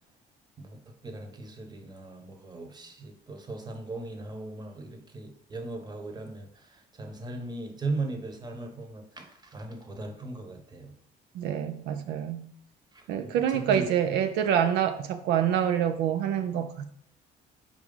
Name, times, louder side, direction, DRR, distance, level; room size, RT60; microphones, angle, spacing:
voice 1, 0.6-10.9 12.9-13.9, right 3 dB, 25° right, 1.1 m, -38 dB
voice 2, 11.4-12.5 13.1-16.9, right 9 dB, 80° right, 0.5 m, -26 dB
4.6 x 3.7 x 5.4 m
cardioid pair, 110°, 17 cm